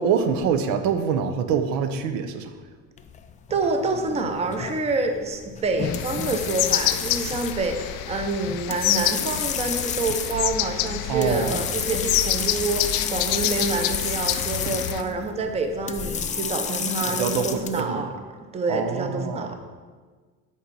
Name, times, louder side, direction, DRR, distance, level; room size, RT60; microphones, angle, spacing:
voice 1, 0.0-2.5 11.1-11.6 14.6-14.7 17.1-18.0 18.7-19.5, right 6 dB, 80° right, 8 dB, 0.8 m, -25 dB
sound 1, 3.0-17.8, left 7 dB, 20° left, 0.4 m, -31 dB
voice 2, 3.5-18.1 18.5-19.6, right 3 dB, 20° right, 5 dB, 0.6 m, -27 dB
sound 2, 5.8-15.0, left 13 dB, 90° left, 0.5 m, -28 dB
8.4 x 4.3 x 5.3 m, 1.5 s
cardioid pair, 140°, 34 cm